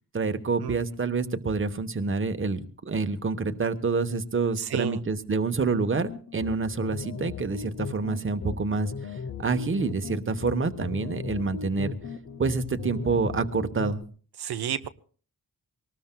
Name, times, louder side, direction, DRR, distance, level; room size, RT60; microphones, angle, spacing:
voice 1, 0.1-12.0 12.4-14.0, right 4 dB, 35° right, 9 dB, 1.0 m, -27 dB
voice 2, 4.6-5.0 14.4-14.9, right 9 dB, 90° right, 11 dB, 0.8 m, -31 dB
sound 1, 6.0-14.0, left 5 dB, 45° left, 0.7 m, -38 dB
24.0 x 19.0 x 2.2 m, 0.41 s
wide cardioid pair, 115°, 38 cm